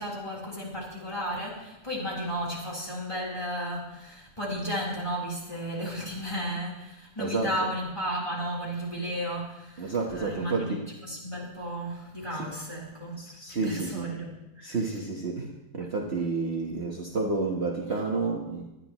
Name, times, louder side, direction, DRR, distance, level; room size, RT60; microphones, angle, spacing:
voice 1, 0.0-14.8 17.9-18.0, equal, 20° left, -5 dB, 3.5 m, -34 dB
voice 2, 7.2-7.5 9.8-10.8 13.2-14.1 14.6-18.6, right 3 dB, 40° right, -1 dB, 1.4 m, -30 dB
23.5 x 9.9 x 3.0 m, 0.96 s
omnidirectional pair, 1.8 m